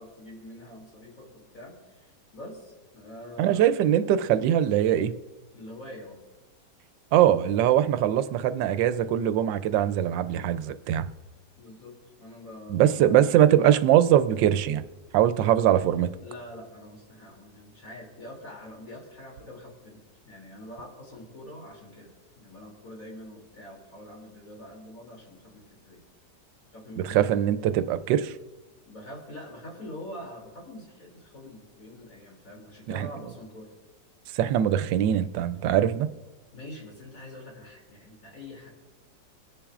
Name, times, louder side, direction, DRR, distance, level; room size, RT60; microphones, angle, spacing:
voice 1, 0.0-3.8 5.5-6.2 11.6-13.5 15.3-15.5 16.2-26.0 26.6-27.3 28.8-33.7 36.5-38.7, left 1 dB, 50° left, -2 dB, 3.2 m, -45 dB
voice 2, 3.4-5.2 7.1-11.1 12.7-14.8 15.1-16.1 27.1-28.3 32.9-33.1 34.3-36.1, right 11 dB, 85° right, 12 dB, 1.3 m, -22 dB
23.0 x 10.0 x 2.4 m, 1.2 s
omnidirectional pair, 1.9 m